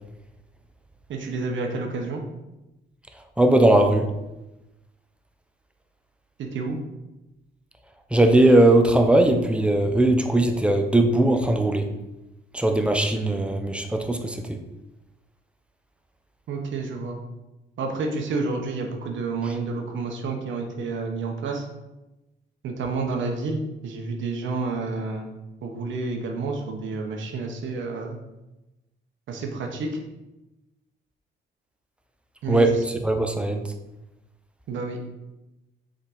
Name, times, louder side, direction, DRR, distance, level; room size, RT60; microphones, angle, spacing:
voice 1, 1.1-2.2 6.4-6.8 16.5-17.2 17.8-21.7 22.6-25.3 25.6-28.2 29.3-30.0 32.4-32.8 34.7-35.0, right 3 dB, 70° right, 2 dB, 1.2 m, -29 dB
voice 2, 3.4-4.1 8.1-11.9 12.5-14.6 32.5-33.6, right 1 dB, 5° right, 5 dB, 0.9 m, -19 dB
6.5 x 5.1 x 5.1 m, 1.0 s
cardioid pair, 90°, 20 cm